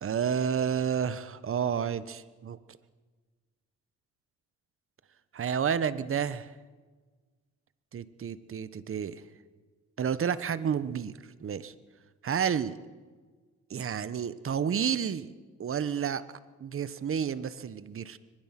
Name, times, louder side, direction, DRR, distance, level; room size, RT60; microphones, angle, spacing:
voice 1, 0.0-2.6 5.3-6.5 7.9-9.2 10.0-11.7 12.2-12.8 13.7-15.3 15.6-16.2 16.6-18.2, right 8 dB, 45° right, 15 dB, 1.2 m, -30 dB
23.0 x 21.0 x 6.0 m, 1.4 s
cardioid pair, 90°, 30 cm